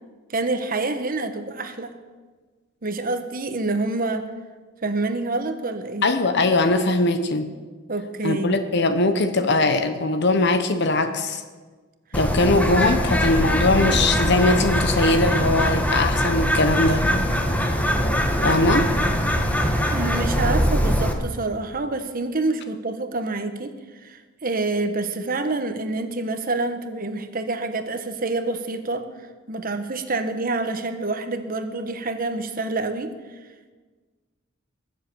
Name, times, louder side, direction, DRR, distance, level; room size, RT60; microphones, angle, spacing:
voice 1, 0.3-1.9 2.8-4.3 4.8-6.1 7.9-8.5 19.9-23.7 24.0-29.0 29.5-33.1, right 2 dB, 45° right, 9 dB, 1.2 m, -27 dB
voice 2, 6.0-7.5 8.2-11.4 12.1-17.0 18.4-18.9, left 2 dB, 60° left, 8 dB, 1.0 m, -21 dB
Bird, 12.1-21.1, equal, 10° left, 1.3 m, -22 dB
21.5 x 7.5 x 7.0 m, 1.4 s
head